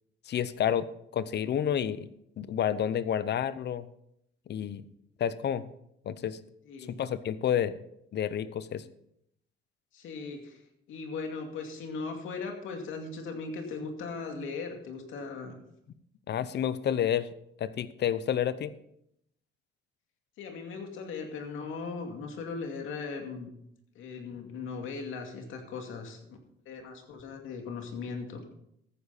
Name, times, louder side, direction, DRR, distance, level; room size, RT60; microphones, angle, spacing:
voice 1, 0.3-2.1 2.4-3.9 4.5-4.8 5.2-5.7 6.1-6.4 6.9-7.8 8.1-8.8 16.3-17.3 17.6-18.7, left 9 dB, 60° left, 16 dB, 0.8 m, -29 dB
voice 2, 6.6-7.0 9.9-10.6 10.9-15.6 20.4-23.5 23.9-26.4 26.7-28.5, left 4 dB, 85° left, 3 dB, 2.4 m, -38 dB
14.0 x 9.7 x 4.2 m, 0.76 s
cardioid pair, 90°, 20 cm